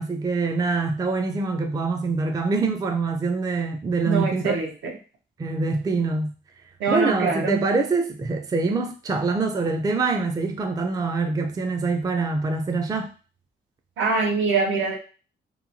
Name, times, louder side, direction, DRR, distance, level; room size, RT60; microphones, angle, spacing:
voice 1, 0.0-4.5 5.4-6.3 6.9-13.1, right 3 dB, 20° right, 0.4 m, -24 dB
voice 2, 4.0-4.9 6.8-7.6 14.0-15.0, right 4 dB, 75° right, 0.8 m, -24 dB
2.8 x 2.3 x 2.6 m
cardioid pair, 90°, 20 cm